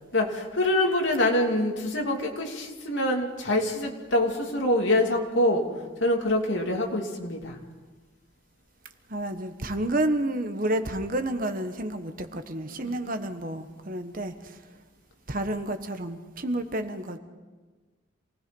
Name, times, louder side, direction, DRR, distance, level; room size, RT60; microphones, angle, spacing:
voice 1, 0.1-5.6 6.0-7.6 12.8-12.9, left 1 dB, 60° left, 1 dB, 2.8 m, -25 dB
voice 2, 9.1-14.6 15.3-17.2, right 1 dB, 40° right, 8 dB, 1.2 m, -30 dB
27.5 x 19.0 x 5.4 m, 1.4 s
head